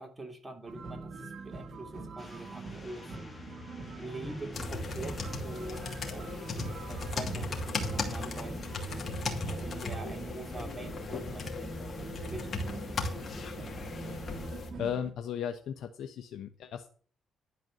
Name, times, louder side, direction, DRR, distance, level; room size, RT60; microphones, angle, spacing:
voice 1, 0.0-3.1 4.0-14.2, right 2 dB, 20° right, 3 dB, 2.8 m, -45 dB
sound 1, 0.7-15.1, right 3 dB, 50° right, 1.9 m, -44 dB
sound 2, 2.2-14.5, left 3 dB, 25° left, 2.1 m, -49 dB
sound 3, 4.5-14.7, left 3 dB, 50° left, 2.6 m, -37 dB
voice 2, 14.5-16.9, left 8 dB, 75° left, 6 dB, 1.0 m, -36 dB
11.5 x 4.7 x 8.1 m, 0.43 s
cardioid pair, 90°, 0 cm